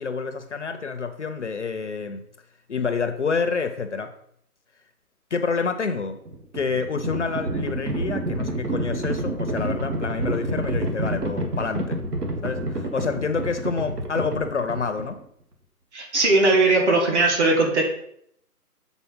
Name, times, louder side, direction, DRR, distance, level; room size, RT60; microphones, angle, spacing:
voice 1, 0.0-2.2 2.7-4.1 5.3-6.2 6.5-12.0 12.4-15.2, left 5 dB, 50° left, 9 dB, 0.6 m, -28 dB
Livestock farm animals working animals, 6.1-15.2, right 1 dB, 80° right, 1.6 m, -28 dB
voice 2, 15.9-17.8, right 2 dB, 45° right, 0 dB, 2.0 m, -19 dB
7.1 x 4.1 x 5.4 m, 0.71 s
hypercardioid pair, 155°, 47 cm